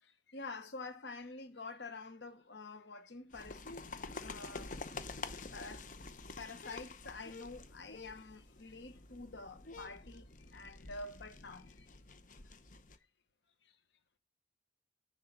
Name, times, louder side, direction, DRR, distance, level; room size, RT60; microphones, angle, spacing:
voice 1, 0.0-3.8 4.2-4.8 5.5-5.9 6.4-11.9 13.6-13.7, left 3 dB, 85° left, 1.1 m, -48 dB
sound 1, 3.3-13.0, left 3 dB, 45° left, 0.9 m, -48 dB
10.5 x 3.7 x 7.3 m
head